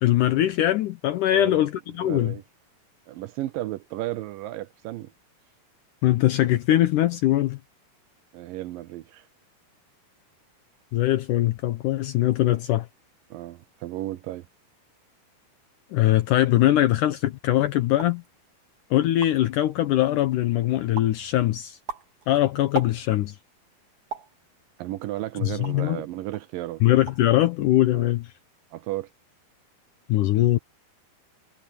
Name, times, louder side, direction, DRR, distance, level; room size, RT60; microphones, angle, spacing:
voice 1, 0.0-2.4 6.0-7.6 10.9-12.9 15.9-18.2 18.9-21.8 22.3-23.4 25.4-26.0 26.8-28.3 30.1-30.6, left 14 dB, 75° left, 1.9 m, -22 dB
voice 2, 1.3-1.6 2.0-2.4 3.1-5.1 8.3-9.3 13.3-14.5 24.8-26.8 27.9-28.1 28.7-29.1, right 15 dB, 80° right, 2.1 m, -34 dB
sound 1, 17.9-18.3 18.8-18.9 19.1-19.6 20.1-20.5 21.0-21.2 21.7-23.3 24.1-24.4 25.0-25.9 26.3-26.5 26.9-27.4 27.6-28.1, right 6 dB, 50° right, 3.8 m, -38 dB
omnidirectional pair, 4.5 m